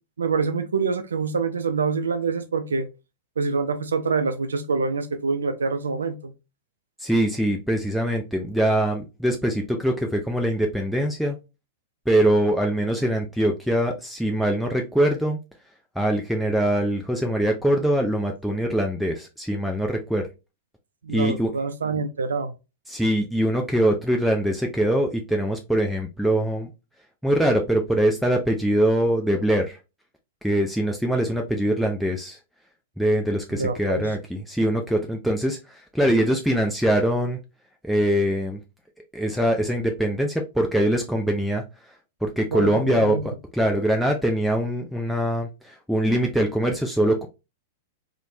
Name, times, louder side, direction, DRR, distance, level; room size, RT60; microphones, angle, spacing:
voice 1, 0.2-2.9 3.4-6.3 21.0-22.5 33.5-34.2 42.5-43.2, right 4 dB, 75° right, 0.3 m, -26 dB
voice 2, 7.0-11.4 12.1-15.4 16.0-20.3 21.1-21.5 22.9-26.7 27.2-29.8 30.4-32.4 33.0-37.4 37.8-38.6 39.1-41.6 42.2-47.3, right 1 dB, ahead, 0.4 m, -23 dB
3.1 x 2.0 x 2.6 m
figure-of-eight pair, 100°, 0 cm